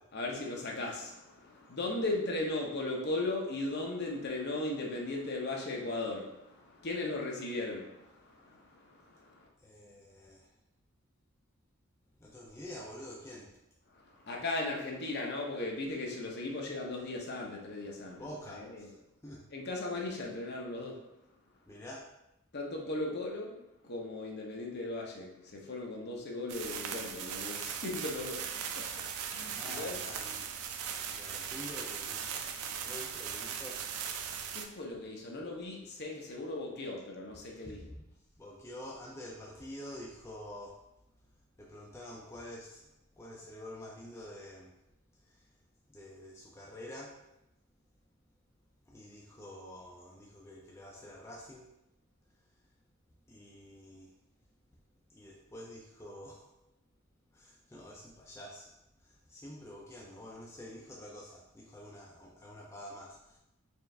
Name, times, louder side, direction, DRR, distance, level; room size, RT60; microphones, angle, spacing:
voice 1, 0.1-9.5 13.9-18.9 19.5-21.0 22.5-28.5 28.7-30.0 34.5-37.8, left 2 dB, 50° left, -1 dB, 0.7 m, -37 dB
voice 2, 9.6-10.5 12.2-13.5 18.2-19.0 19.2-19.5 21.7-22.1 29.5-30.5 31.1-32.5 32.8-33.8 37.7-38.0 38.4-40.8 41.6-44.7 45.3-45.4 45.9-47.2 48.9-51.7 53.3-54.1 55.1-56.5 57.3-58.8 59.0-63.4, left 1 dB, 10° left, -4 dB, 0.4 m, -48 dB
sound 1, 26.5-34.7, right 7 dB, 90° right, 0.4 m, -39 dB
4.5 x 2.4 x 3.2 m, 0.88 s
head